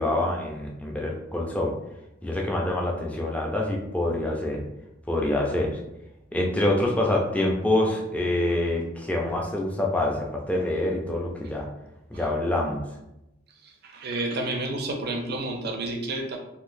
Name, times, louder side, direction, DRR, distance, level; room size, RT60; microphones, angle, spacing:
voice 1, 0.0-1.7 2.2-4.6 5.1-5.7 6.3-11.7 12.1-12.8, left 1 dB, 5° left, -1 dB, 0.5 m, -26 dB
voice 2, 13.6-16.4, right 2 dB, 50° right, 3 dB, 0.6 m, -30 dB
3.7 x 2.6 x 2.6 m, 0.90 s
head